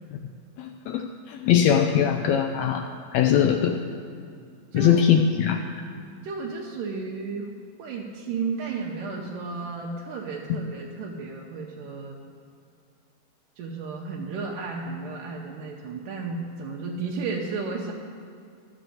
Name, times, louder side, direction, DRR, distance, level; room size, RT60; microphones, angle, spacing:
voice 1, 0.6-2.9 3.1-3.8 4.7-5.6, left 8 dB, 85° left, 5 dB, 1.5 m, -21 dB
voice 2, 4.7-5.1 6.2-7.5 7.8-12.2 13.6-17.9, right 4 dB, 90° right, -2 dB, 2.5 m, -33 dB
12.5 x 6.1 x 7.7 m, 2.3 s
omnidirectional pair, 3.7 m